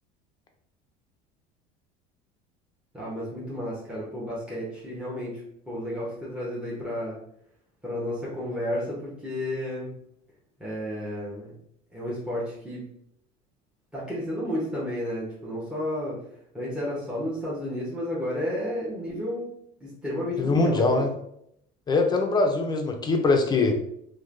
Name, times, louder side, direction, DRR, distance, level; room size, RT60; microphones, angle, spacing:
voice 1, 2.9-7.2 7.8-9.9 10.6-11.5 11.9-12.8 13.9-16.2 16.5-19.5 19.8-21.0, left 1 dB, 5° right, -7 dB, 0.9 m, -32 dB
voice 2, 20.4-21.1 21.9-23.8, left 3 dB, 25° left, 4 dB, 0.5 m, -22 dB
3.0 x 2.2 x 2.5 m, 0.73 s
supercardioid pair, 100°, 18 cm